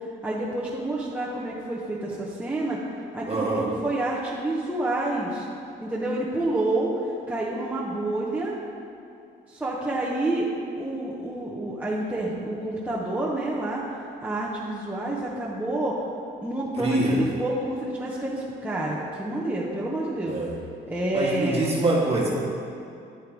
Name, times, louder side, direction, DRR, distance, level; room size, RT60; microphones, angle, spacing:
voice 1, 0.2-2.8 3.1-5.5 5.8-6.9 7.3-8.6 9.5-10.5 10.8-13.8 14.2-16.0 16.4-20.4 20.9-21.7, right 2 dB, 10° right, -7 dB, 1.0 m, -28 dB
voice 2, 3.3-3.6 16.8-17.2 20.2-20.5 21.1-22.3, right 2 dB, 30° right, -4 dB, 1.8 m, -24 dB
10.0 x 3.6 x 4.6 m, 2.6 s
cardioid pair, 90°, 20 cm